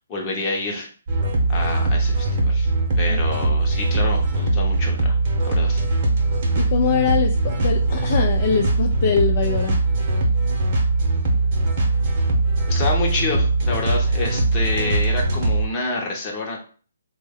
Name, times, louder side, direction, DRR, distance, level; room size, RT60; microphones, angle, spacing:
voice 1, 0.1-0.9 1.5-2.7 3.0-5.2 5.4-5.8 12.7-16.6, left 3 dB, 20° left, -1 dB, 0.8 m, -28 dB
sound 1, 1.1-15.7, right 2 dB, 35° right, 0.9 m, -21 dB
voice 2, 6.6-9.8, left 7 dB, 45° left, 4 dB, 0.3 m, -23 dB
3.2 x 2.2 x 3.4 m, 0.41 s
hypercardioid pair, 160°, 0 cm